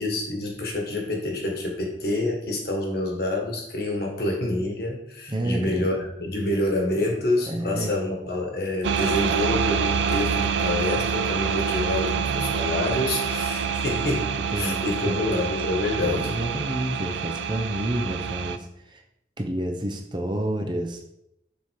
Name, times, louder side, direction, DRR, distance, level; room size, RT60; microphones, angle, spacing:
voice 1, 0.0-14.3 14.6-16.3, left 2 dB, 60° left, 0 dB, 1.5 m, -27 dB
voice 2, 5.3-5.9 7.0-7.1 7.5-7.9 12.2-12.6 14.5-15.2 16.0-19.0 19.4-21.0, right 1 dB, 25° right, 3 dB, 0.7 m, -30 dB
sound 1, 8.8-18.6, right 7 dB, 80° right, 0.4 m, -26 dB
7.1 x 3.7 x 4.7 m, 0.81 s
head